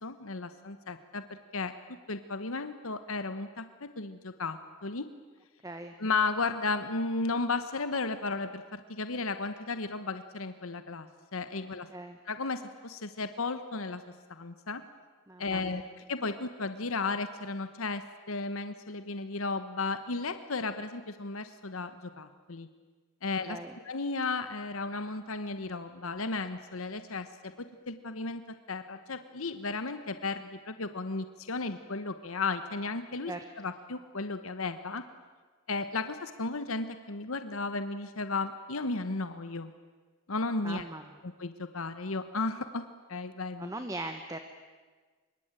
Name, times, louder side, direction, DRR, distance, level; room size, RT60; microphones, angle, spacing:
voice 1, 0.0-1.7 2.1-5.1 6.0-11.9 12.3-14.0 14.3-14.8 15.4-15.8 16.1-22.7 23.2-23.6 23.8-28.4 28.7-35.0 35.7-39.7 40.3-40.9 41.2-43.7, left 3 dB, 70° left, 10 dB, 1.1 m, -34 dB
voice 2, 5.6-5.9 11.9-12.2 15.3-15.8 23.5-23.8 33.3-33.4 40.6-41.0 43.6-44.4, right 2 dB, 15° right, 7 dB, 1.2 m, -40 dB
25.5 x 23.5 x 9.0 m, 1.4 s
head